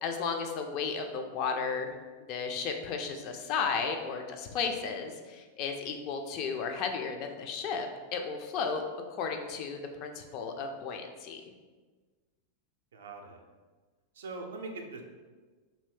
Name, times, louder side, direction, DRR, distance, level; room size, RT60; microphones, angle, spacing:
voice 1, 0.0-1.9 2.3-8.8 9.1-11.5, left 5 dB, 40° left, 5 dB, 0.3 m, -34 dB
voice 2, 12.9-13.4 14.2-15.0, right 3 dB, 65° right, 3 dB, 0.4 m, -41 dB
2.7 x 2.6 x 3.4 m, 1.4 s
figure-of-eight pair, 90°, 0 cm